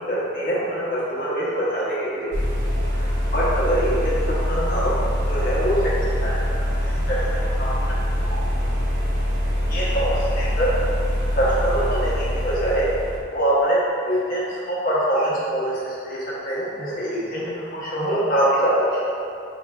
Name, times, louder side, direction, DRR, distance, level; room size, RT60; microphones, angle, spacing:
voice 1, 0.0-2.3 3.3-4.2 4.5-5.0 5.3-7.3 7.6-7.9 8.2-8.4 9.7-10.7 11.3-12.9 13.3-13.8 14.1-19.1, right 1 dB, 45° left, -8 dB, 0.9 m, -24 dB
sound 1, 2.3-13.2, equal, 75° right, 0.8 m, -24 dB
4.8 x 3.1 x 2.3 m, 2.4 s
head